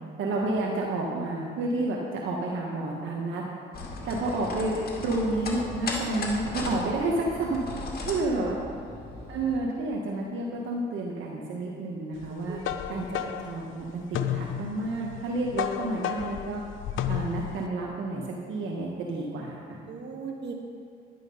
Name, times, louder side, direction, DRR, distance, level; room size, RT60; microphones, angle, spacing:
voice 1, 0.2-3.4 4.1-7.6 8.0-8.6 9.3-12.6 12.9-16.6 17.1-18.2 18.5-19.8, right 2 dB, 80° right, -2 dB, 1.6 m, -30 dB
sound 1, 3.7-9.6, left 2 dB, 50° left, 2.3 m, -36 dB
voice 2, 8.4-8.7 12.5-13.0 13.3-13.5 19.9-20.5, right 5 dB, 60° right, 0 dB, 2.2 m, -40 dB
sound 2, 12.2-17.7, left 10 dB, 80° left, 0.7 m, -33 dB
11.0 x 10.5 x 5.6 m, 2.3 s
cardioid pair, 90°, 20 cm